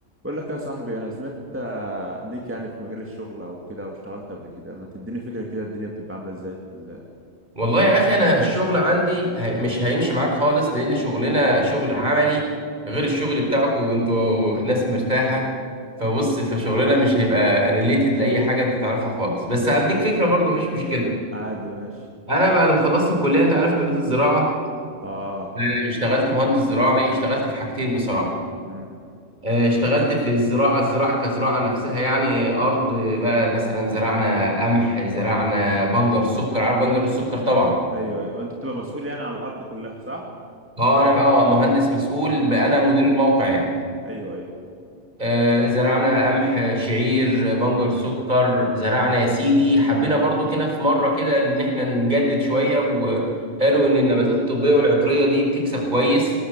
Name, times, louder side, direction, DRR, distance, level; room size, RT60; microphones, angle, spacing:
voice 1, 0.2-7.0 21.3-22.1 25.0-25.5 28.6-28.9 37.9-40.3 42.4-42.8 44.0-44.5, right 1 dB, 10° right, -1 dB, 2.2 m, -32 dB
voice 2, 7.5-12.4 12.9-15.5 16.0-21.1 22.3-24.5 25.6-28.3 29.4-37.8 40.8-43.7 45.2-53.3 53.6-56.3, equal, 40° right, 0 dB, 5.0 m, -20 dB
22.0 x 18.5 x 8.1 m, 2.4 s
omnidirectional pair, 1.3 m